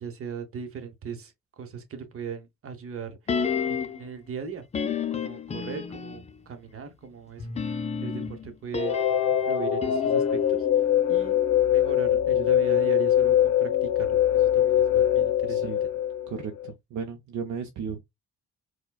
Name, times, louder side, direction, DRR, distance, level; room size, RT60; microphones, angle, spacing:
voice 1, 0.0-3.2 3.7-4.6 5.1-7.5 8.0-9.0 9.3-10.7 11.1-11.4 11.7-13.7 14.0-15.9, right 6 dB, 45° right, 1.0 m, -38 dB
sound 1, 3.3-4.1 4.7-6.4 7.4-11.6 11.9-12.0, left 6 dB, 25° left, 0.4 m, -31 dB
sound 2, 8.7-16.7, left 10 dB, 70° left, 0.6 m, -23 dB
voice 2, 15.5-15.8 16.3-18.0, right 6 dB, 65° right, 0.6 m, -35 dB
4.4 x 2.2 x 2.2 m
cardioid pair, 90°, 30 cm